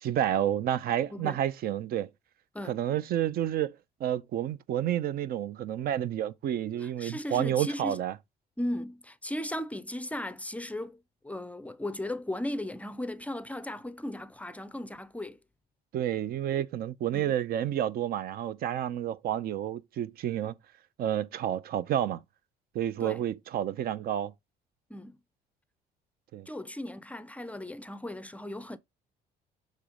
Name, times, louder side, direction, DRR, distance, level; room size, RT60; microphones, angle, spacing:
voice 1, 0.0-2.1 2.6-3.7 4.0-8.1 15.9-20.5 21.0-22.2 22.7-24.3 26.3-26.5, right 11 dB, 65° right, 0.6 m, -30 dB
voice 2, 1.1-1.4 2.5-2.9 6.8-8.0 8.6-15.4 17.1-17.3 23.0-23.2 24.9-25.2 26.5-28.8, left 1 dB, 10° left, 0.5 m, -37 dB
6.6 x 3.1 x 4.9 m
cardioid pair, 110°, 17 cm